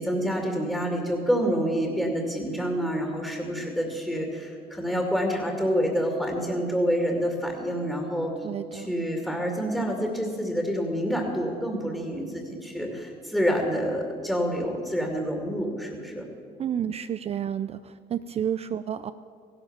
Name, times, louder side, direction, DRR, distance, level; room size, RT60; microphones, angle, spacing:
voice 1, 0.0-8.3 8.7-16.3, equal, 5° left, 1 dB, 2.4 m, -27 dB
voice 2, 8.4-8.9 16.6-19.1, right 9 dB, 40° right, 12 dB, 0.4 m, -30 dB
16.0 x 12.0 x 7.3 m, 2.3 s
cardioid pair, 110°, 17 cm